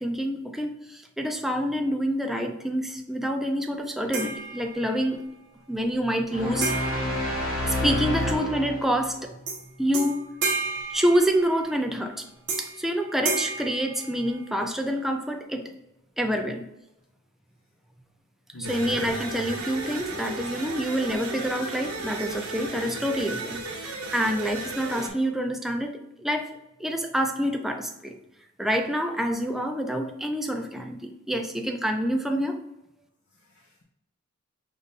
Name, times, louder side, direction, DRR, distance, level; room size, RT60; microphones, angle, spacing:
voice 1, 0.0-5.2 5.7-6.7 7.7-9.4 9.8-10.2 10.9-12.2 12.6-15.7 16.2-16.7 18.7-25.9 26.2-28.1 28.6-32.6, equal, ahead, 4 dB, 0.4 m, -27 dB
sound 1, 4.1-5.1 6.6-8.2 9.5-9.6 9.9-11.8 12.5-12.9 13.2-14.7, right 4 dB, 60° right, 1.1 m, -32 dB
sound 2, 6.3-9.1, left 1 dB, 90° left, 1.6 m, -28 dB
voice 2, 18.5-19.2 33.3-33.8, equal, 65° left, -2 dB, 0.7 m, -42 dB
sound 3, 18.6-25.1, right 2 dB, 85° right, 1.0 m, -35 dB
5.3 x 2.6 x 3.9 m, 0.86 s
head